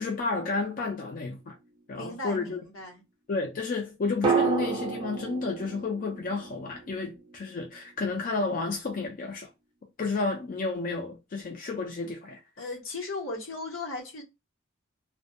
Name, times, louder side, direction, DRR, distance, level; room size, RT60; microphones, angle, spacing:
voice 1, 0.0-1.5 1.9-2.6 3.3-9.5 10.0-12.4, left 3 dB, 40° left, 0.4 m, -31 dB
sound 1, 0.7-1.8 4.2-8.2 8.5-8.6, right 5 dB, 20° right, 0.5 m, -32 dB
voice 2, 1.9-3.0 12.6-14.2, left 3 dB, 75° left, 0.9 m, -36 dB
2.2 x 2.1 x 2.6 m
head